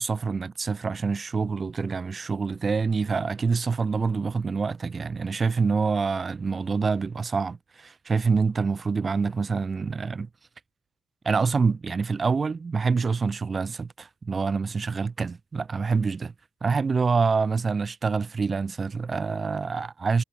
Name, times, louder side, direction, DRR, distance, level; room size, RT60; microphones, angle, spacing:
voice 1, 0.0-10.3 11.2-16.3 16.6-20.2, right 4 dB, 35° right, 0.6 m, -26 dB
cardioid pair, 90°, 0 cm